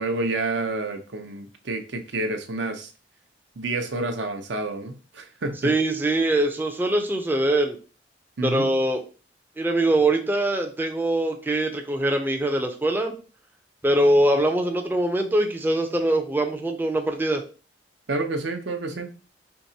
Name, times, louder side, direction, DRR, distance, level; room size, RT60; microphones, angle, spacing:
voice 1, 0.0-2.9 3.6-5.7 8.4-8.7 18.1-19.1, right 2 dB, 80° right, 4 dB, 0.7 m, -29 dB
voice 2, 5.6-7.8 8.4-9.0 9.6-13.2 13.8-17.4, right 1 dB, 10° right, 4 dB, 0.4 m, -23 dB
4.5 x 2.8 x 2.7 m, 0.36 s
head